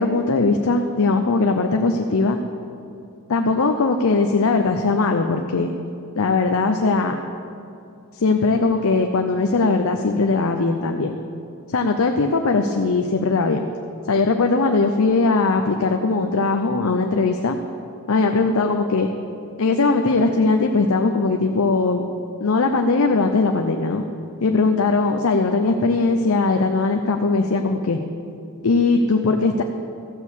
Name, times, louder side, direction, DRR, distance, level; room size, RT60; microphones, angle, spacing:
voice 1, 0.0-2.4 3.3-5.7 6.2-7.1 8.1-11.2 11.7-13.6 14.1-17.6 18.1-19.1 19.6-22.0 22.4-24.0 24.4-28.0 28.6-29.6, left 3 dB, 65° left, 5 dB, 0.6 m, -20 dB
14.0 x 6.3 x 7.2 m, 2.5 s
head